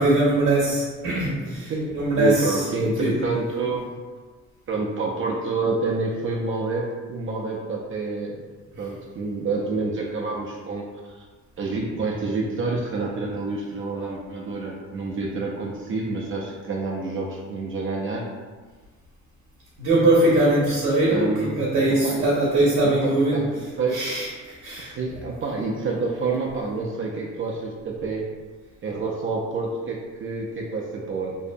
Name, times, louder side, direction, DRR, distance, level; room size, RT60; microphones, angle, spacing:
voice 1, 0.0-2.7 3.0-3.1 19.8-23.4 23.9-24.9, right 1 dB, 70° right, -5 dB, 0.7 m, -21 dB
voice 2, 1.6-3.9 4.7-8.4 8.8-11.2 11.6-18.3 21.1-22.3 22.8-24.0 24.9-28.2 28.8-31.4, right 3 dB, 45° right, -2 dB, 0.4 m, -28 dB
2.6 x 2.1 x 2.5 m, 1.4 s
cardioid pair, 90°, 30 cm